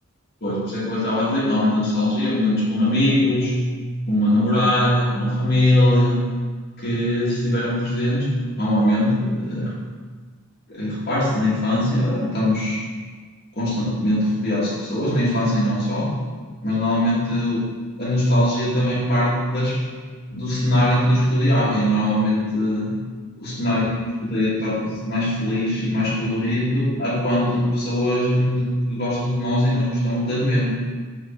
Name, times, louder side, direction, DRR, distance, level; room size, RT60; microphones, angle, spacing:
voice 1, 0.4-3.6 4.1-6.3 6.8-8.3 8.6-9.7 10.7-12.8 13.5-16.2 16.6-17.6 18.0-19.8 20.3-23.0 23.4-30.8, left 1 dB, 45° left, -8 dB, 1.7 m, -21 dB
5.1 x 4.0 x 5.1 m, 1.5 s
head